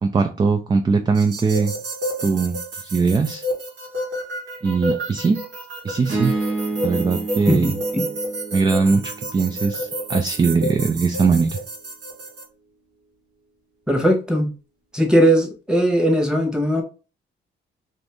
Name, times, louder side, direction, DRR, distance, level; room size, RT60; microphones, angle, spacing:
voice 1, 0.0-1.7 2.2-2.6 2.8-3.4 4.6-5.4 5.8-6.3 6.8-7.7 8.5-11.6, right 4 dB, 20° right, 0.3 m, -20 dB
sound 1, 1.1-12.4, equal, 75° right, 1.3 m, -30 dB
sound 2, 6.1-10.4, right 2 dB, 40° right, 1.2 m, -29 dB
voice 2, 7.5-8.1 13.9-14.5 14.9-16.8, equal, 5° right, 1.1 m, -19 dB
2.6 x 2.6 x 3.3 m
cardioid pair, 90°, 20 cm